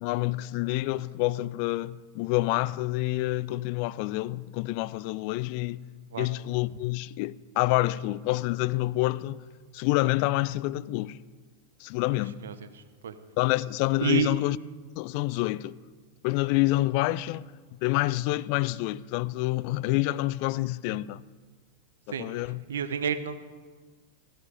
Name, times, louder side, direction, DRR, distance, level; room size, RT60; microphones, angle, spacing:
voice 1, 0.0-5.9 6.2-9.4 9.7-11.2 11.8-12.4 13.4-14.6 15.0-15.8 16.2-21.2 22.1-22.6, left 18 dB, 45° left, 0.4 m, -27 dB
voice 2, 14.0-14.3 22.1-22.3 22.7-23.4, right 8 dB, 65° right, 1.0 m, -29 dB
16.0 x 15.0 x 5.3 m
figure-of-eight pair, 90°, 0 cm